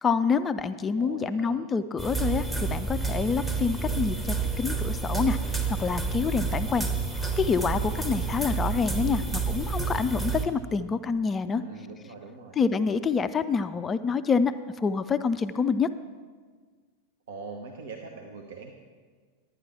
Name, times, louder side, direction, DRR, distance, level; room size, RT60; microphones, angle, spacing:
voice 1, 0.0-6.9 7.4-11.6 12.6-15.9, left 5 dB, 20° left, 12 dB, 0.3 m, -27 dB
voice 2, 1.0-1.6 11.5-12.6 17.3-18.7, right 4 dB, 60° right, 2 dB, 0.9 m, -42 dB
sound 1, 2.0-10.4, right 4 dB, 5° right, 1.0 m, -29 dB
11.5 x 9.4 x 4.3 m, 1.5 s
figure-of-eight pair, 90°, 0 cm